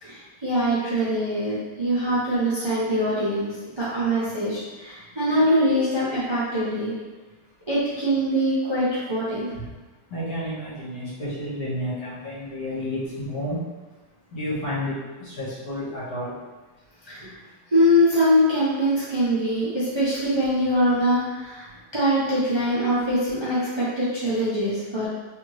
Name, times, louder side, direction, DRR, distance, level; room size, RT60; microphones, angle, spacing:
voice 1, 0.0-6.9 7.7-9.5 17.0-17.4 17.7-21.7 21.9-25.1, equal, 20° right, -11 dB, 0.8 m, -23 dB
voice 2, 10.1-13.6 14.3-16.3, left 1 dB, 60° left, -10 dB, 2.0 m, -31 dB
3.6 x 3.5 x 3.2 m, 1.2 s
omnidirectional pair, 1.9 m